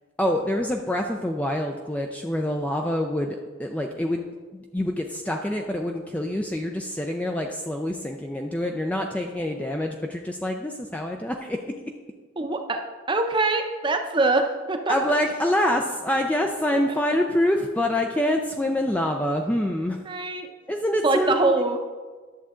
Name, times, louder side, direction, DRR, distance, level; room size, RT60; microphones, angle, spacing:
voice 1, 0.2-4.3 4.5-11.6 14.9-20.0 20.7-21.8, left 1 dB, 5° left, 2 dB, 0.4 m, -26 dB
voice 2, 12.4-15.1 20.1-20.5 21.0-21.8, right 3 dB, 25° right, 5 dB, 0.7 m, -24 dB
11.0 x 7.0 x 3.7 m, 1.4 s
head